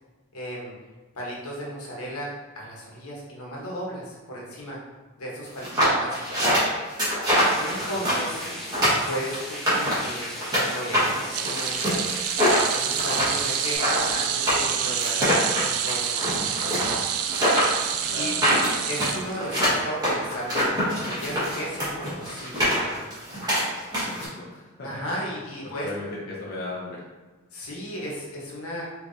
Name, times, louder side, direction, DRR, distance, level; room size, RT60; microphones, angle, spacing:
voice 1, 0.3-0.7 1.1-4.8 5.2-6.2 7.6-8.4 9.0-12.2 12.7-16.9 18.1-18.3 18.9-23.0 24.8-25.9 27.5-28.8, equal, 90° left, -4 dB, 1.2 m, -35 dB
sound 1, 5.6-10.6 10.9-24.2, equal, 20° right, 1.5 m, -24 dB
sound 2, 7.3-13.8, equal, ahead, 0.8 m, -38 dB
voice 2, 7.7-8.1 8.4-8.5 18.1-18.7 24.0-24.9 25.8-27.0, left 2 dB, 45° left, -5 dB, 0.7 m, -37 dB
sound 3, 11.3-19.8 20.1-20.3 21.5-21.6, right 9 dB, 85° right, 0.3 m, -28 dB
4.9 x 3.1 x 2.7 m, 1.3 s
head